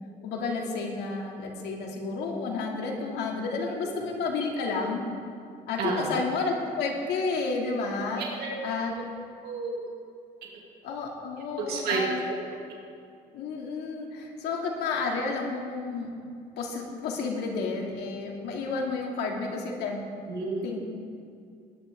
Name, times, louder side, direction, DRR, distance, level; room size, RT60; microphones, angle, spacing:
voice 1, 0.2-5.0 5.7-8.2 8.6-8.9 10.8-12.2 13.3-16.1 16.6-20.0 20.6-20.8, left 4 dB, 80° left, 0 dB, 2.4 m, -31 dB
voice 2, 5.8-6.1 8.2-8.8 9.4-9.8 11.6-12.0 20.3-20.7, right 4 dB, 70° right, -2 dB, 2.4 m, -31 dB
19.5 x 11.5 x 3.6 m, 2.4 s
cardioid pair, 110°, 17 cm